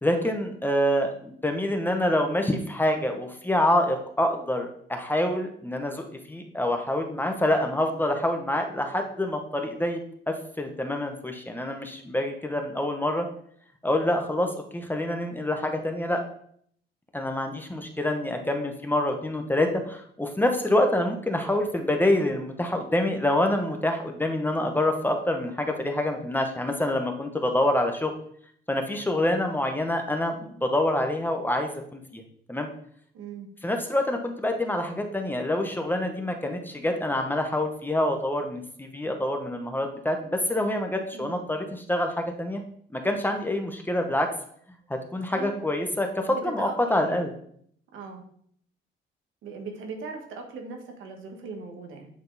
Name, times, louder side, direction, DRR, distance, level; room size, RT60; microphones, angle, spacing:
voice 1, 0.0-10.0 10.3-13.3 13.8-16.2 17.1-28.1 28.7-32.2 32.5-32.7 33.6-42.6 42.9-44.3 44.9-47.3, left 1 dB, 10° left, 4 dB, 0.9 m, -26 dB
voice 2, 33.1-33.5 41.1-41.4 45.3-45.6 46.3-47.2 47.9-48.2 49.4-52.1, right 4 dB, 80° right, 3 dB, 1.5 m, -39 dB
8.4 x 3.7 x 4.0 m, 0.64 s
cardioid pair, 90°, 20 cm